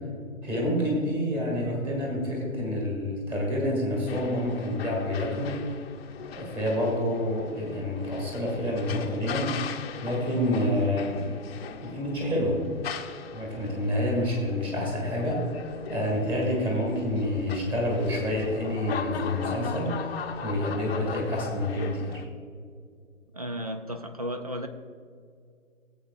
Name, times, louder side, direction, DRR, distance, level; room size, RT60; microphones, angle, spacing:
voice 1, 0.4-5.6 6.3-9.5 10.0-11.2 11.8-12.6 13.3-15.4 15.9-22.2, left 1 dB, 10° right, -1 dB, 2.0 m, -28 dB
sound 1, 4.1-22.2, left 7 dB, 45° left, 0.8 m, -39 dB
voice 2, 23.3-24.7, equal, 30° right, 8 dB, 0.3 m, -34 dB
16.5 x 8.1 x 2.5 m, 2.2 s
hypercardioid pair, 150°, 41 cm